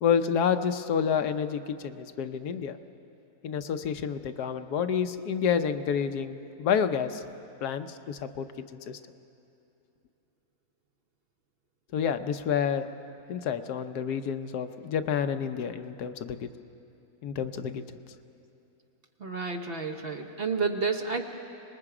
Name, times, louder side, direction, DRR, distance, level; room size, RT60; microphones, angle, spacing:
voice 1, 0.0-2.8 3.4-7.2 7.6-9.0 11.9-12.8 13.3-16.5 17.2-17.8, left 7 dB, 80° left, 9 dB, 1.3 m, -29 dB
voice 2, 19.2-21.2, right 4 dB, 45° right, 4 dB, 1.0 m, -30 dB
26.0 x 20.5 x 4.9 m, 2.7 s
omnidirectional pair, 1.7 m